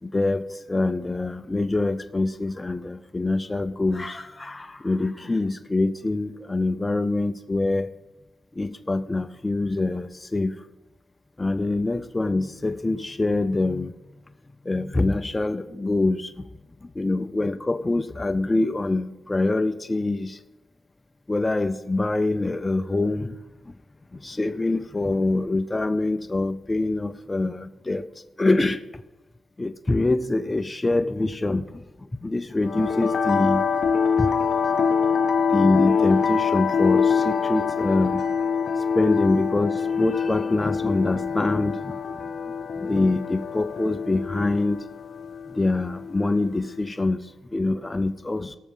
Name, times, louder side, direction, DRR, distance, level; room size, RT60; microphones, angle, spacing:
voice 1, 0.0-7.9 8.5-10.7 11.4-13.9 14.6-16.5 16.8-20.4 21.3-23.4 23.7-23.8 24.1-28.1 28.4-29.0 29.6-33.7 34.2-34.3 35.5-38.3 38.9-42.3 42.7-44.8 45.5-48.6, left 2 dB, 20° left, 9 dB, 0.4 m, -25 dB
sound 1, 32.6-46.7, left 6 dB, 60° left, 0.7 m, -25 dB
17.5 x 6.3 x 5.4 m, 1.1 s
cardioid pair, 105°, 0 cm